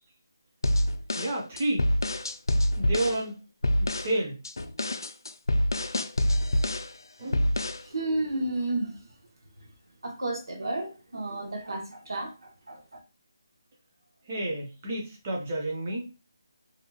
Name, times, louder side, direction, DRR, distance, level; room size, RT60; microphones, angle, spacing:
sound 1, 0.6-3.2 3.6-4.1 4.5-6.9 7.3-7.9, left 1 dB, 85° left, 0.3 m, -26 dB
voice 1, 1.2-1.9 2.8-3.4 3.8-4.4 7.2-7.5 14.3-16.0, right 1 dB, 15° right, 0.4 m, -30 dB
voice 2, 7.9-8.9 10.0-12.8, right 2 dB, 85° right, 0.9 m, -32 dB
2.7 x 2.2 x 2.7 m
figure-of-eight pair, 180°, 2 cm